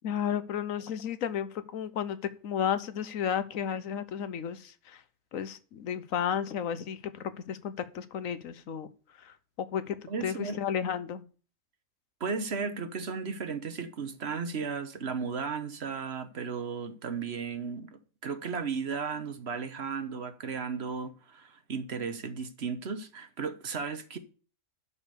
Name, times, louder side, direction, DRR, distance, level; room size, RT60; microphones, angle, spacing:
voice 1, 0.0-2.2 2.4-5.0 5.3-8.9 9.1-10.0 10.2-11.2, left 8 dB, 90° left, 1.3 m, -33 dB
voice 2, 10.1-10.6 12.2-24.2, right 5 dB, 55° right, 1.3 m, -35 dB
11.5 x 5.4 x 6.8 m
omnidirectional pair, 1.3 m